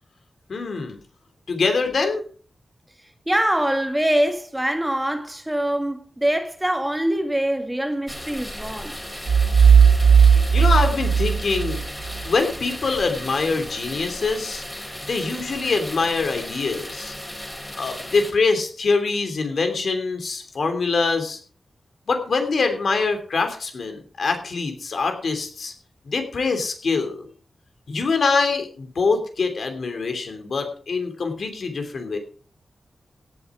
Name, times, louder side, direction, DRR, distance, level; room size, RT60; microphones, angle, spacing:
voice 1, 0.5-1.0 1.5-2.2 10.3-11.8 12.2-14.6 15.0-17.1 17.8-21.4 22.1-25.7 26.1-27.3 27.9-32.2, left 4 dB, 70° left, 3.1 m, -24 dB
voice 2, 3.3-8.9, right 1 dB, 10° right, 1.7 m, -23 dB
sound 1, 8.1-18.3, left 1 dB, 5° left, 3.5 m, -35 dB
sound 2, 9.3-12.1, right 6 dB, 85° right, 0.8 m, -15 dB
16.5 x 8.7 x 4.8 m
wide cardioid pair, 120°, 0 cm